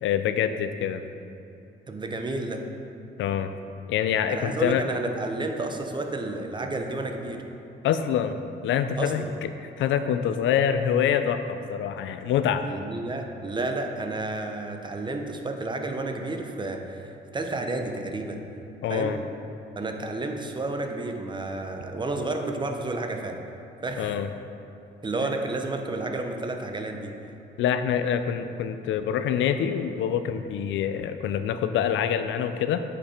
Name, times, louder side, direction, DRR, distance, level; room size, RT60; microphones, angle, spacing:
voice 1, 0.0-1.0 3.2-3.5 3.9-4.8 7.8-8.4 8.6-12.7 18.8-19.2 24.0-24.3 27.6-32.8, left 8 dB, 75° left, 9 dB, 0.5 m, -25 dB
voice 2, 1.9-2.7 4.3-7.4 9.0-9.3 12.6-18.4 18.9-19.1 19.8-23.4 23.8-24.1 25.0-27.1, right 2 dB, 25° right, 4 dB, 0.8 m, -31 dB
8.4 x 5.5 x 4.4 m, 2.8 s
cardioid pair, 90°, 20 cm